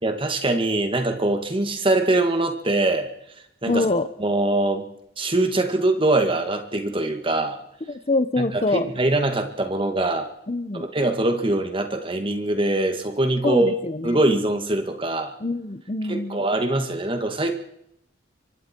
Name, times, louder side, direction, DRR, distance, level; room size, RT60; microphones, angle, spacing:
voice 1, 0.0-3.1 3.6-3.8 4.2-4.9 5.2-7.6 8.4-8.5 8.7-10.3 10.7-13.7 14.0-15.3 16.1-17.5, right 2 dB, 30° right, 6 dB, 2.0 m, -23 dB
voice 2, 3.7-4.1 7.9-8.9 10.5-10.9 13.4-14.2 15.4-16.4, left 2 dB, 35° left, 12 dB, 0.8 m, -24 dB
25.0 x 24.0 x 4.6 m, 0.76 s
head